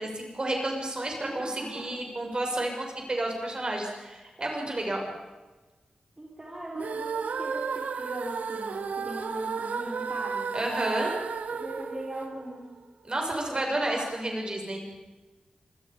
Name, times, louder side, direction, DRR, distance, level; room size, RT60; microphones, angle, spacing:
voice 1, 0.0-5.0 10.5-11.1 13.1-14.8, right 1 dB, 35° right, 1 dB, 6.7 m, -31 dB
voice 2, 1.2-1.8 6.2-10.5 11.5-12.6 13.5-14.0, right 1 dB, 20° right, -4 dB, 4.5 m, -40 dB
sound 1, 6.7-12.9, right 5 dB, 90° right, 1.5 m, -33 dB
26.0 x 21.0 x 5.4 m, 1.2 s
wide cardioid pair, 85°, 3 cm